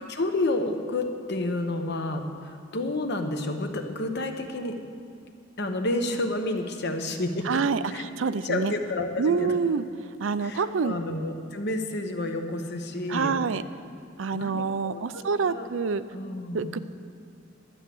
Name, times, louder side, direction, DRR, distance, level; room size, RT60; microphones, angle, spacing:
voice 1, 0.0-4.8 5.6-7.6 7.9-9.6 10.4-13.4 14.3-15.7 16.1-16.8, left 2 dB, 60° left, 5 dB, 1.0 m, -30 dB
voice 2, 7.5-7.8 8.2-8.7 9.2-9.8 10.2-11.0 13.1-13.6 14.2-16.0 16.5-16.8, right 5 dB, 75° right, 13 dB, 0.5 m, -26 dB
12.0 x 8.3 x 7.7 m, 2.3 s
head